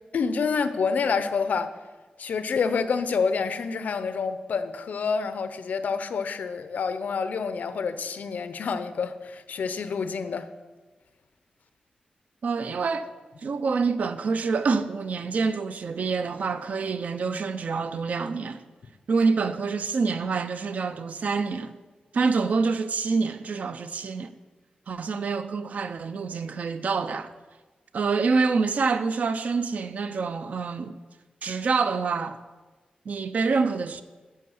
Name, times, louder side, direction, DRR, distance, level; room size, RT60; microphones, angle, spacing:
voice 1, 0.1-1.7 2.2-10.5, left 5 dB, 70° left, 0.8 m, -28 dB
voice 2, 12.4-13.1 13.4-18.6 19.1-21.8 22.1-24.3 24.9-27.3 27.9-31.0 31.4-32.4 33.1-34.0, right 4 dB, 60° right, 0.6 m, -26 dB
11.5 x 6.6 x 7.8 m
wide cardioid pair, 135°, 3 cm